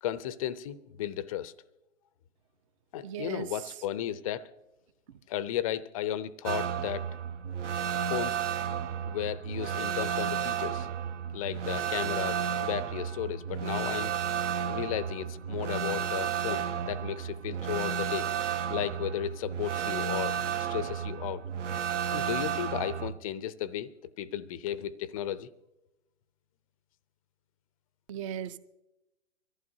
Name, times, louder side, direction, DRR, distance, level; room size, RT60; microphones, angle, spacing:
voice 1, 0.0-1.5 2.9-4.5 5.3-7.1 8.1-8.4 9.0-10.9 11.3-14.1 14.7-18.3 18.7-21.4 22.1-23.9 24.2-25.5, left 11 dB, 25° left, 16 dB, 0.5 m, -34 dB
voice 2, 3.0-3.5 28.1-28.6, right 9 dB, 25° right, 14 dB, 0.5 m, -36 dB
sound 1, 6.4-23.1, right 8 dB, 60° right, 1.1 m, -32 dB
24.0 x 14.5 x 2.7 m, 0.95 s
hypercardioid pair, 130°, 40 cm